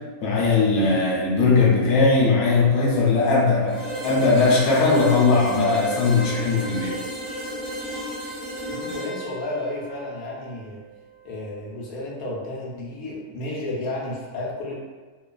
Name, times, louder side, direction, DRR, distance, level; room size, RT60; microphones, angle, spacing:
voice 1, 0.2-7.0, left 3 dB, 60° left, -4 dB, 0.8 m, -19 dB
sound 1, 3.7-11.5, equal, 40° right, 0.6 m, -34 dB
voice 2, 8.7-10.8 11.2-14.7, left 2 dB, 80° left, -4 dB, 1.0 m, -32 dB
3.1 x 2.2 x 2.2 m, 1.3 s
omnidirectional pair, 1.5 m